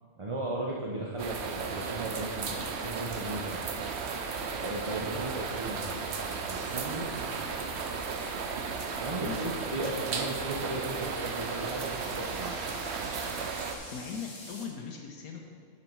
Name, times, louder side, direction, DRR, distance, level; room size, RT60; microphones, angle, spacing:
voice 1, 0.2-3.6 4.6-6.0 6.2-7.4 9.0-12.6, right 2 dB, 30° right, -4 dB, 0.6 m, -36 dB
sound 1, 1.2-13.8, right 5 dB, 55° right, 0.9 m, -35 dB
sound 2, 3.4-14.6, left 2 dB, 50° left, 1.6 m, -51 dB
voice 2, 9.2-9.5 13.9-15.4, left 6 dB, 85° left, 2 dB, 1.3 m, -39 dB
9.5 x 5.9 x 4.6 m, 2.2 s
omnidirectional pair, 1.5 m